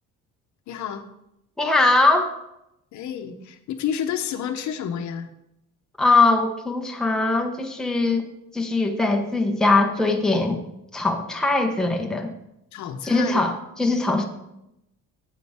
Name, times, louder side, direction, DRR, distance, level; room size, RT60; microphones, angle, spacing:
voice 1, 0.7-1.1 2.9-5.3 12.7-13.4, left 8 dB, 60° left, 7 dB, 0.9 m, -30 dB
voice 2, 1.6-2.4 6.0-8.2 8.5-10.6 10.9-12.3 13.0-14.2, left 3 dB, ahead, 2 dB, 0.8 m, -21 dB
8.3 x 8.1 x 3.5 m, 0.84 s
cardioid pair, 130°, 33 cm